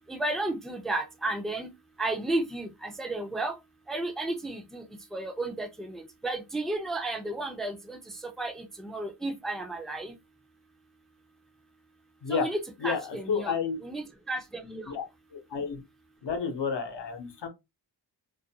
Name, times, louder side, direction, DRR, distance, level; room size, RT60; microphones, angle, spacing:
voice 1, 0.1-1.7 2.0-3.6 3.9-4.8 5.1-8.0 8.4-10.1 12.3-13.6 13.8-14.9, right 2 dB, ahead, 0.4 m, -33 dB
voice 2, 12.8-13.8 14.9-15.0 15.3-15.8 16.2-17.5, left 6 dB, 75° left, 0.8 m, -31 dB
2.5 x 2.1 x 2.7 m
wide cardioid pair, 140°, 42 cm